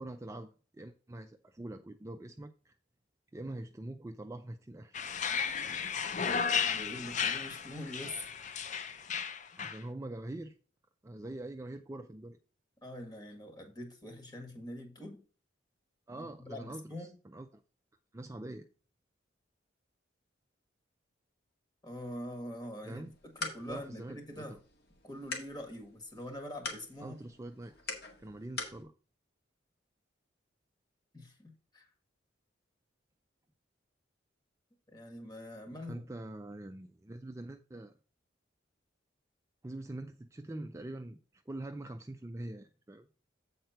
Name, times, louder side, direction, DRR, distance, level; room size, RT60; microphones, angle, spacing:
voice 1, 0.0-2.8 3.3-5.0 9.6-10.6 11.0-12.4 16.1-17.6 18.1-18.7 22.8-23.1 23.7-24.6 27.0-27.9 28.2-28.9 35.7-38.0 39.6-43.1, right 1 dB, 15° right, 0.4 m, -44 dB
sound 1, 4.9-9.8, left 6 dB, 40° left, 0.5 m, -34 dB
voice 2, 6.7-8.2 12.8-15.2 16.2-17.1 21.8-23.1 23.3-24.6 25.0-27.2 31.1-31.9 34.9-36.0, left 1 dB, 20° left, 1.7 m, -44 dB
sound 2, 23.0-28.8, left 3 dB, 55° left, 1.9 m, -44 dB
8.0 x 4.3 x 5.7 m
head